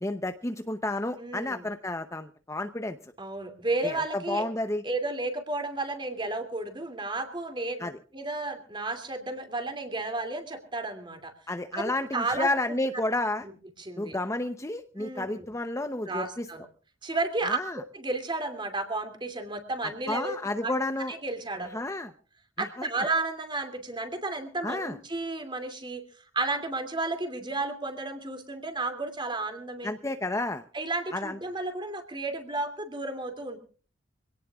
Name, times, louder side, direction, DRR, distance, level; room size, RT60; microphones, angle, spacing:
voice 1, 0.0-3.1 3.8-4.8 7.8-7.9 11.5-13.4 14.0-16.5 17.5-17.8 20.1-21.1 21.6-22.1 22.6-22.9 24.6-25.0 29.8-30.6 31.1-31.4, left 2 dB, 15° left, 8 dB, 0.7 m, -31 dB
voice 2, 1.2-1.6 3.2-4.5 4.8-7.9 8.1-11.3 11.7-12.5 13.4-13.5 13.8-14.2 15.0-15.5 16.1-16.7 17.0-20.4 20.6-20.7 21.1-21.8 22.6-26.0 26.3-29.9 30.7-33.6, right 2 dB, 25° right, 8 dB, 2.6 m, -32 dB
25.5 x 17.5 x 2.4 m, 0.40 s
head